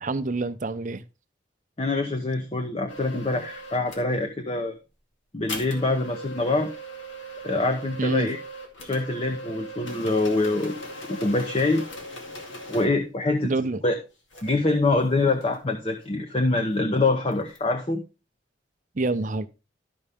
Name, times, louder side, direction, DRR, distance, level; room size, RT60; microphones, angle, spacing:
voice 1, 0.0-1.0 8.0-8.3 13.4-13.8 19.0-19.5, right 3 dB, 45° right, 0.6 m, -27 dB
voice 2, 1.8-4.7 5.3-6.7 7.4-8.4 8.8-10.8 11.0-11.8 12.7-13.5 13.8-14.0 14.4-18.0, left 2 dB, 30° left, 0.8 m, -25 dB
sound 1, 2.9-4.1 5.5-12.9 14.3-14.5 14.8-16.0 17.3-17.6, right 1 dB, 90° left, 2.3 m, -39 dB
12.5 x 5.5 x 3.5 m
head